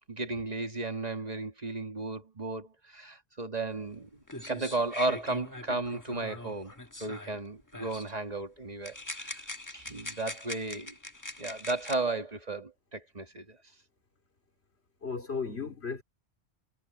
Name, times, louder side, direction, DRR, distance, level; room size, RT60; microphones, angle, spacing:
voice 1, 0.1-6.7 7.0-9.4 9.7-10.9 11.4-13.6, right 2 dB, 40° right, 1.8 m, -34 dB
sound 1, 3.9-4.0 4.3-7.4 7.7-8.1 8.8-12.0, left 1 dB, 20° left, 1.4 m, -42 dB
voice 2, 15.0-16.0, left 5 dB, 85° left, 3.3 m, -35 dB
omnidirectional pair, 1.1 m